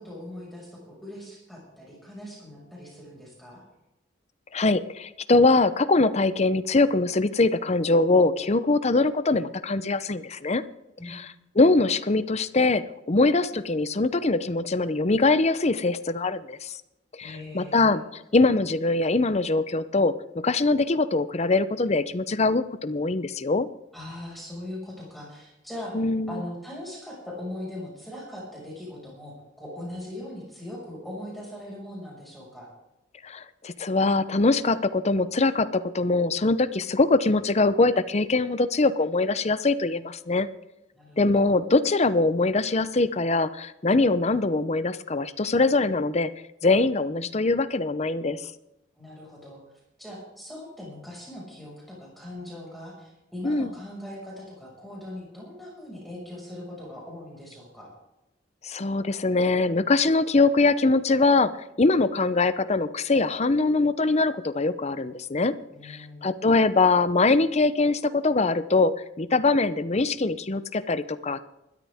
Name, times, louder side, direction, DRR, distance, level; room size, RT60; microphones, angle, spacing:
voice 1, 0.0-3.6 11.0-11.3 17.2-17.9 23.9-26.0 26.3-32.7 40.9-41.6 49.0-49.6 50.0-57.9 65.7-66.2, left 1 dB, ahead, -4 dB, 5.8 m, -40 dB
voice 2, 4.5-10.6 11.1-11.2 11.6-16.7 17.2-20.1 20.4-23.7 25.9-26.4 33.2-40.5 41.2-46.3 46.6-48.4 53.4-53.7 58.6-61.5 61.8-65.5 65.8-68.9 69.2-71.4, left 3 dB, 35° left, 14 dB, 0.7 m, -23 dB
20.5 x 13.0 x 3.6 m, 0.93 s
head